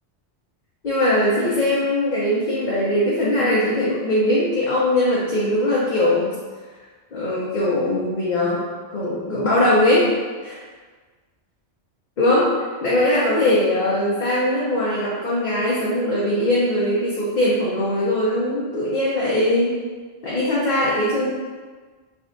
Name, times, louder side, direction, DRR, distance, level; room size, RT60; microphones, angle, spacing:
voice 1, 0.8-6.3 7.1-8.6 8.9-10.1 10.4-10.6 12.2-12.5 12.8-19.7 20.2-21.3, left 1 dB, 45° left, -8 dB, 0.7 m, -20 dB
3.4 x 2.3 x 3.7 m, 1.4 s
omnidirectional pair, 1.2 m